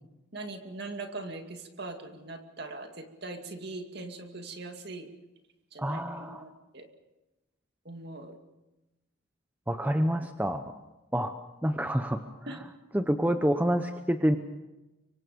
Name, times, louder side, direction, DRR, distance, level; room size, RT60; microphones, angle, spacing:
voice 1, 0.3-5.1 5.7-6.9 7.9-8.4 12.5-12.6, right 2 dB, 50° right, 5 dB, 2.3 m, -41 dB
voice 2, 5.8-6.5 9.7-10.7 11.1-11.3 11.6-12.7 12.9-14.4, equal, 10° right, 7 dB, 0.7 m, -28 dB
25.0 x 24.5 x 5.2 m, 1.0 s
head